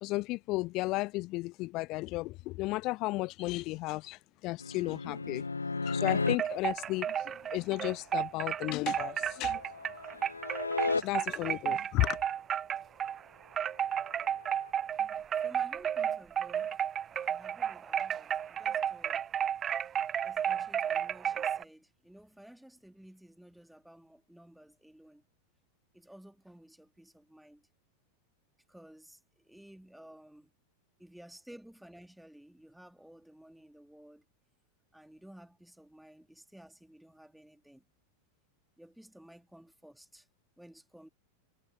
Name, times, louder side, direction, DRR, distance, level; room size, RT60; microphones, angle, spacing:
voice 1, 0.0-5.4 5.8-9.6 10.8-12.2, left 21 dB, 40° left, 0.5 m, -34 dB
sound 1, 4.6-6.4 9.1-11.0 14.4-14.7, left 3 dB, 80° left, 1.1 m, -34 dB
sound 2, 6.1-13.2 13.5-21.6, right 9 dB, 25° right, 0.4 m, -32 dB
voice 2, 15.0-16.8 17.2-19.3 20.2-25.2 25.9-27.7 28.7-30.5 31.0-34.2 34.9-37.8 38.8-40.3 40.6-41.1, right 1 dB, ahead, 2.3 m, -55 dB
figure-of-eight pair, 90°, 0 cm